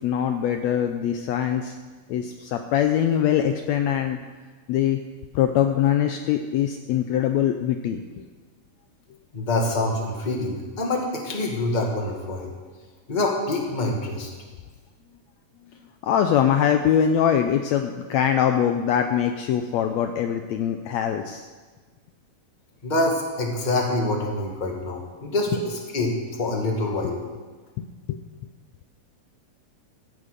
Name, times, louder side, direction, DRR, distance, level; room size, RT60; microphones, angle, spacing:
voice 1, 0.0-1.7 2.1-4.2 4.7-5.0 5.3-8.0 16.0-21.4 27.8-28.2, left 9 dB, 85° left, 6 dB, 1.5 m, -23 dB
voice 2, 9.3-12.5 13.1-14.3 22.8-27.2, left 2 dB, 20° left, 0 dB, 1.4 m, -26 dB
15.0 x 8.9 x 6.6 m, 1.3 s
omnidirectional pair, 3.9 m